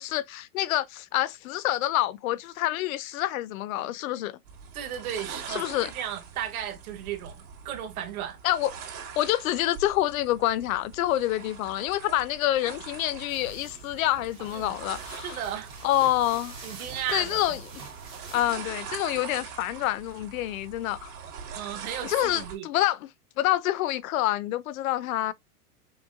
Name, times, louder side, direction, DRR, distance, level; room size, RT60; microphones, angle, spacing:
voice 1, 0.0-4.3 5.5-5.9 8.4-8.7 9.2-15.4 15.8-16.6 17.1-17.6 18.3-21.1 22.0-23.1 23.4-25.3, left 14 dB, 65° left, 0.6 m, -27 dB
sound 1, 4.5-22.6, right 6 dB, 90° right, 2.3 m, -43 dB
voice 2, 4.7-8.4 14.5-14.7 15.2-15.7 16.6-17.5 21.5-22.6, right 10 dB, 70° right, 1.3 m, -35 dB
sound 2, 13.3-18.5, right 4 dB, 15° right, 0.4 m, -46 dB
5.9 x 2.1 x 2.4 m
supercardioid pair, 160°, 44 cm